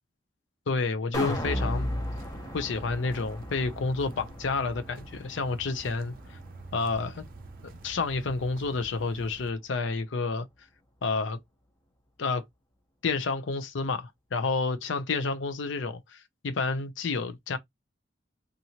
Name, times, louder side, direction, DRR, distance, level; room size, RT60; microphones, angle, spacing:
voice 1, 0.7-1.9 2.5-6.4 6.7-7.2 7.8-10.5 11.0-11.4 12.2-12.4 13.0-17.6, left 4 dB, 85° left, 0.5 m, -30 dB
sound 1, 1.1-7.4 7.7-7.8, equal, 20° left, 0.7 m, -36 dB
sound 2, 1.1-9.5, right 3 dB, 50° right, 0.4 m, -48 dB
2.8 x 2.5 x 2.8 m
head